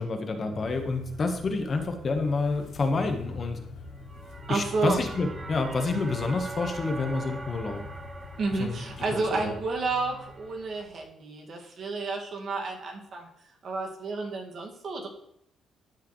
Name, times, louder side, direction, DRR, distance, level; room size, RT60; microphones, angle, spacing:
voice 1, 0.0-3.6 4.5-7.8 8.6-8.8 9.1-9.5, left 3 dB, 40° left, 5 dB, 1.1 m, -28 dB
sound 1, 0.5-11.0, left 3 dB, 80° left, 1.1 m, -44 dB
sound 2, 3.9-10.8, right 2 dB, 25° right, 0.8 m, -43 dB
voice 2, 4.5-5.0 8.4-13.3 13.6-15.1, right 3 dB, 55° right, 0 dB, 1.9 m, -31 dB
12.0 x 4.8 x 3.1 m, 0.75 s
cardioid pair, 90°, 0 cm